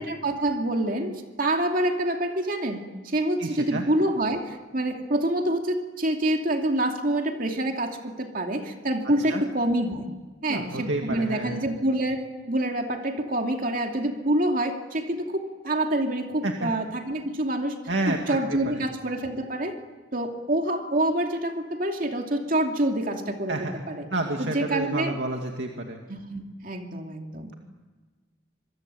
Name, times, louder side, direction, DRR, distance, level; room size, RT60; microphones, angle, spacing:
voice 1, 0.0-10.1 10.4-12.2 12.5-17.8 18.1-19.7 20.1-24.1 24.4-25.2 26.1-27.5, right 1 dB, 50° right, 3 dB, 2.6 m, -27 dB
voice 2, 3.4-3.8 9.3-9.4 10.5-11.6 16.4-16.7 17.9-18.8 23.5-23.7 24.1-26.0, right 2 dB, 75° right, 2 dB, 2.4 m, -30 dB
26.5 x 23.0 x 9.0 m, 1.3 s
head